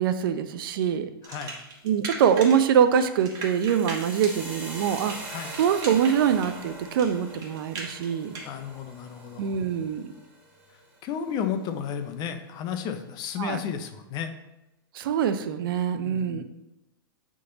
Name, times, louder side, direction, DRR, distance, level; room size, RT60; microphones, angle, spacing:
voice 1, 0.0-1.1 1.8-5.1 5.6-8.4 9.4-10.1 13.4-13.6 14.9-16.4, right 8 dB, 65° right, 10 dB, 0.6 m, -24 dB
voice 2, 1.2-1.6 5.3-5.5 8.4-9.5 11.0-14.3 16.1-16.4, left 7 dB, 35° left, 8 dB, 0.7 m, -33 dB
sound 1, 1.2-2.7 2.9-8.5, right 3 dB, 30° right, 1.5 m, -38 dB
sound 2, 3.3-11.3, right 2 dB, 15° right, 1.7 m, -42 dB
8.2 x 3.8 x 3.9 m, 0.90 s
hypercardioid pair, 130°, 12 cm